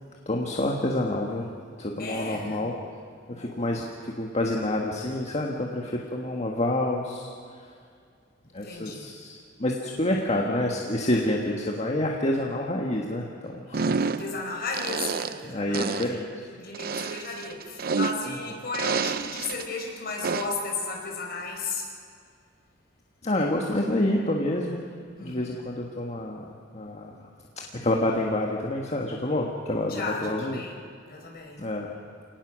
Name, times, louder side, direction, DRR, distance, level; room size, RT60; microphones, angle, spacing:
voice 1, 0.2-1.5 1.8-2.7 3.3-7.3 7.6-7.7 8.5-14.1 15.4-16.5 18.3-18.4 23.2-24.9 25.2-26.5 26.7-27.3 27.8-30.6 31.6-31.9, left 1 dB, 35° left, 0 dB, 1.6 m, -28 dB
voice 2, 2.0-2.7 3.3-3.9 8.6-9.1 14.0-21.9 25.2-25.6 29.9-30.8 31.1-31.6, left 3 dB, 55° left, 0 dB, 4.8 m, -35 dB
sound 1, 13.7-14.4 14.7-15.5 15.7-16.2 16.7-18.4 18.7-19.6 20.2-20.7, right 5 dB, 50° right, 0.6 m, -29 dB
28.0 x 18.5 x 6.4 m, 2.2 s
head